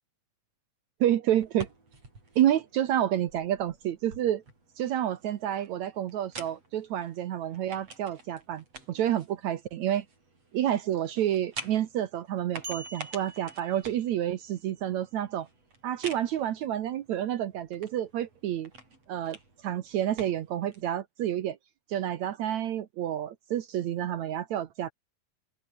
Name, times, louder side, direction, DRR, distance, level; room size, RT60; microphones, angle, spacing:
voice 1, 1.0-1.7 2.4-4.4 4.8-10.1 10.5-15.5 15.8-18.7 19.1-19.4 19.6-21.6 21.9-24.9, right 11 dB, 70° right, 2.4 m, -29 dB
sound 1, 1.3-20.9, right 3 dB, 50° right, 9.1 m, -48 dB
sound 2, 12.6-14.5, right 3 dB, 35° right, 7.0 m, -45 dB
open air
omnidirectional pair, 3.5 m